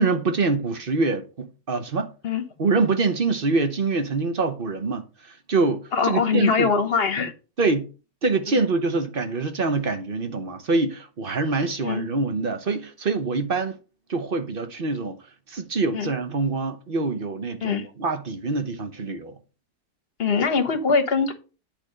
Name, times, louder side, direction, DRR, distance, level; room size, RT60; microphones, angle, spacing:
voice 1, 0.0-2.1 2.6-5.1 5.5-6.7 7.6-7.9 8.2-13.8 14.1-15.2 15.5-19.3, right 3 dB, 40° right, 0.9 m, -25 dB
voice 2, 5.9-7.3 8.5-8.6 11.8-12.0 15.9-16.1 17.6-17.9 20.2-21.3, left 5 dB, 40° left, 1.2 m, -22 dB
9.1 x 4.2 x 6.4 m
omnidirectional pair, 1.9 m